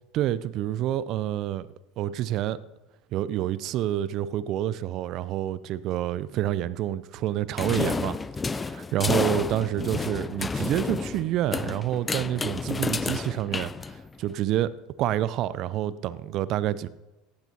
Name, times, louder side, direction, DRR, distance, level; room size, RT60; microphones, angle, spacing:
voice 1, 0.1-1.7 2.0-2.6 3.1-8.2 8.6-14.7 15.0-16.9, right 12 dB, 50° right, 18 dB, 0.6 m, -28 dB
sound 1, 7.6-14.3, left 4 dB, 20° left, 0.5 m, -30 dB
18.5 x 15.0 x 2.9 m, 1.0 s
figure-of-eight pair, 75°, 0 cm